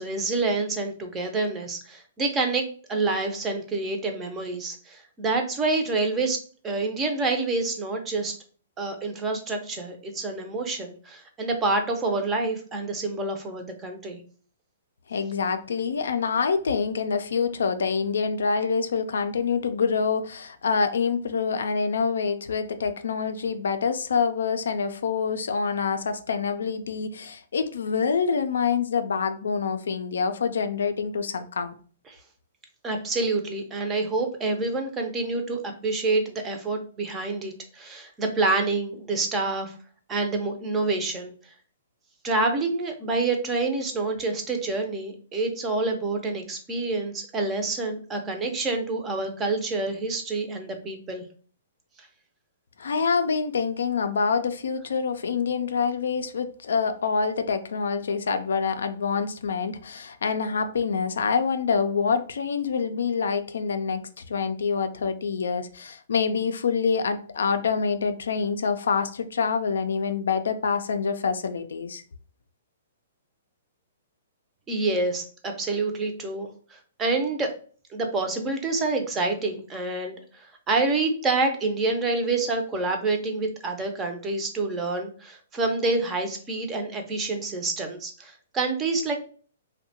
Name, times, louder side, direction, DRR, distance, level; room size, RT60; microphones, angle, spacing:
voice 1, 0.0-8.4 8.8-14.2 32.1-32.2 32.8-39.7 40.1-41.3 42.2-51.2 74.7-77.5 77.9-89.1, right 3 dB, 20° right, 0.5 m, -27 dB
voice 2, 15.1-31.7 52.8-72.0, left 5 dB, 80° left, 0.3 m, -26 dB
2.6 x 2.1 x 2.7 m
hypercardioid pair, 145°, 0 cm